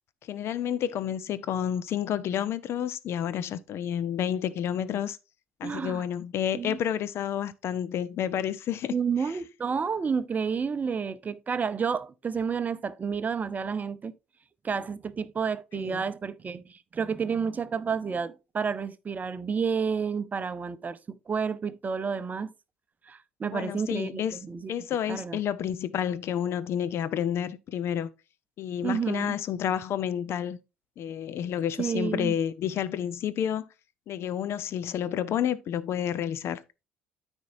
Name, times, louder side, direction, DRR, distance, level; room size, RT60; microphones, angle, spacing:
voice 1, 0.2-5.2 5.6-8.9 9.3-9.4 15.7-16.0 23.5-24.4 24.7-28.1 28.6-30.6 31.0-33.7 34.1-36.6, left 9 dB, 50° left, 0.6 m, -30 dB
voice 2, 5.6-6.0 6.5-6.8 8.9-14.1 14.6-22.5 23.1-24.7 25.1-25.4 28.8-29.3 31.8-32.3, right 6 dB, 30° right, 0.7 m, -30 dB
13.5 x 4.5 x 2.6 m
figure-of-eight pair, 55°, 6 cm